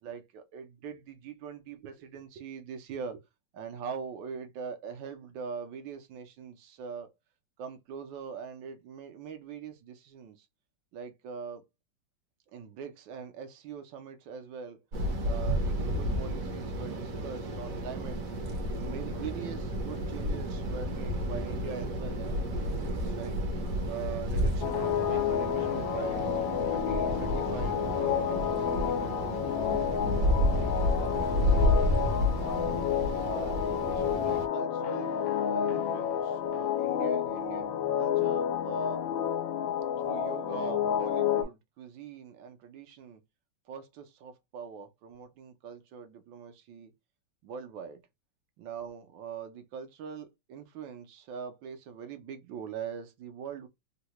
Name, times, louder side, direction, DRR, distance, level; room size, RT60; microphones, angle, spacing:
voice 1, 0.0-3.2 3.5-7.1 7.6-10.5 10.9-11.6 12.5-14.8 15.2-18.2 18.7-23.4 23.9-26.2 26.7-30.4 31.0-31.8 32.4-32.8 33.2-35.1 35.5-39.1 40.1-43.2 43.7-46.9 47.4-48.0 48.6-53.7, right 6 dB, 75° right, 1.4 m, -42 dB
sound 1, 14.9-34.5, equal, 55° right, 1.0 m, -31 dB
sound 2, 24.6-41.4, left 9 dB, 80° left, 1.3 m, -30 dB
3.7 x 2.1 x 2.9 m
omnidirectional pair, 2.1 m